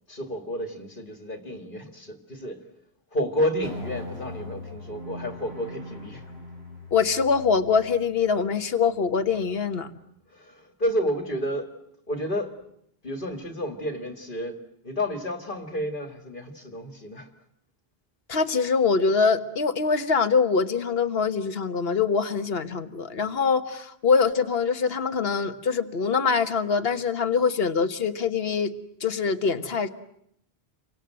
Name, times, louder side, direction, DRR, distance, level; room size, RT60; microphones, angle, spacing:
voice 1, 0.1-2.7 3.1-6.2 10.3-11.7 12.1-12.6 13.0-17.3, equal, 55° left, 5 dB, 2.4 m, -31 dB
sound 1, 3.6-10.1, left 1 dB, 90° right, 7.5 m, -42 dB
voice 2, 6.9-9.9 18.3-28.7 29.0-29.9, left 5 dB, 70° left, 8 dB, 1.6 m, -24 dB
29.5 x 25.0 x 7.7 m, 0.73 s
omnidirectional pair, 1.0 m